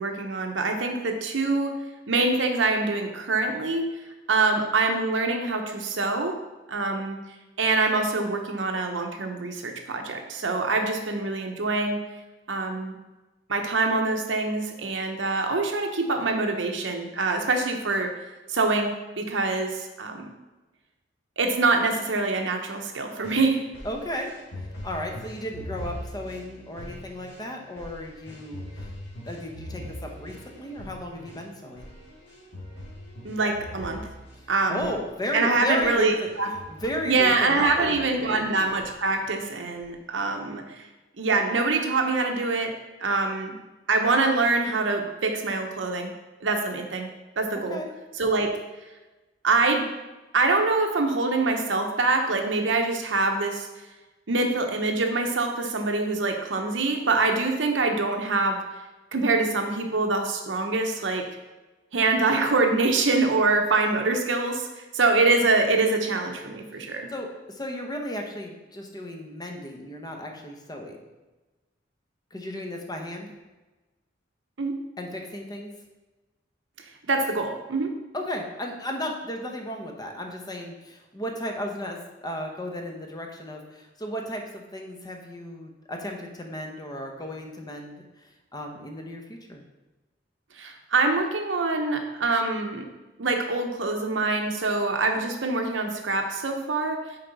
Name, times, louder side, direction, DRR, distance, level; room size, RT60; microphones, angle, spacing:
voice 1, 0.0-1.8 2.1-3.9 4.3-6.3 6.7-7.2 7.6-12.0 12.5-12.9 13.5-18.1 18.5-20.3 21.4-23.6 33.2-34.1 34.5-34.9 35.3-36.5 37.0-40.8 41.2-42.7 43.0-43.5 43.9-46.1 46.4-47.1 47.4-47.8 48.2-48.5 49.4-49.8 50.3-53.7 54.3-58.6 59.1-61.3 61.9-67.1 74.6-74.8 77.1-77.9 90.6-92.8 93.2-97.0, right 3 dB, 80° right, 4 dB, 0.9 m, -25 dB
sound 1, 23.2-35.4 35.8-36.0 36.3-38.4 38.8-39.3 39.8-39.9, equal, 65° left, 2.3 m, -42 dB
voice 2, 23.8-24.3 24.8-28.9 29.2-31.9 34.7-36.3 36.7-38.0 38.2-38.6 47.5-47.9 67.1-71.0 72.3-73.3 75.0-75.7 78.1-87.9 88.2-89.6, left 1 dB, 20° left, 2 dB, 0.8 m, -34 dB
6.8 x 4.6 x 4.0 m, 1.1 s
head